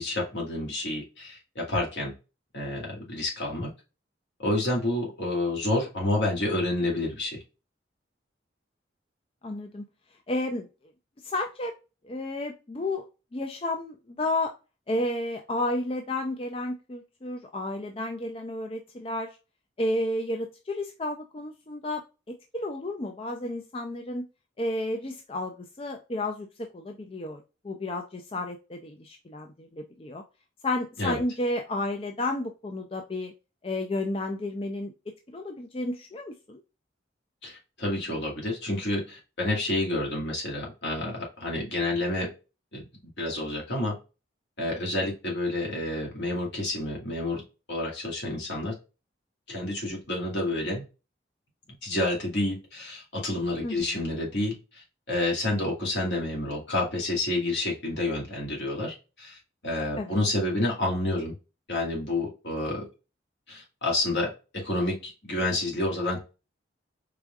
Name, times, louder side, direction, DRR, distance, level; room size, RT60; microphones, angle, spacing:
voice 1, 0.0-2.1 2.5-3.7 4.4-7.4 31.0-31.2 37.4-42.3 42.7-42.9 43.2-43.9 44.6-47.4 47.7-48.8 49.5-50.8 51.8-61.3 61.7-62.9 63.5-66.2, left 1 dB, 70° left, -2 dB, 2.3 m, -29 dB
voice 2, 9.4-9.9 10.3-10.7 11.2-11.7 12.0-13.1 13.3-14.5 14.9-19.3 19.8-22.0 22.5-24.2 24.6-30.2 30.6-33.3 33.6-36.6 53.6-53.9 60.0-60.2, left 1 dB, 30° left, 4 dB, 0.4 m, -32 dB
4.9 x 3.5 x 2.3 m, 0.30 s
head